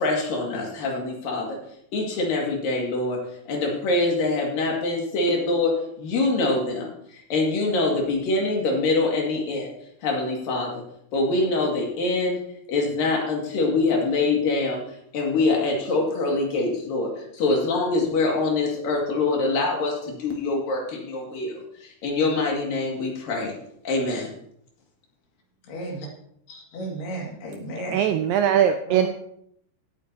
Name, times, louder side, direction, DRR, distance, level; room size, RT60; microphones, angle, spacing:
voice 1, 0.0-1.6 1.9-3.2 3.5-9.7 10.0-10.8 11.1-12.4 12.7-14.8 15.1-21.6 22.0-23.5 23.9-24.3, left 3 dB, 65° left, 3.7 m, -24 dB
voice 2, 25.6-26.1 26.5-28.1 28.9-29.1, right 1 dB, 80° left, 4.2 m, -34 dB
voice 3, 27.9-29.1, right 9 dB, 85° right, 2.0 m, -20 dB
17.0 x 8.8 x 2.8 m
omnidirectional pair, 4.5 m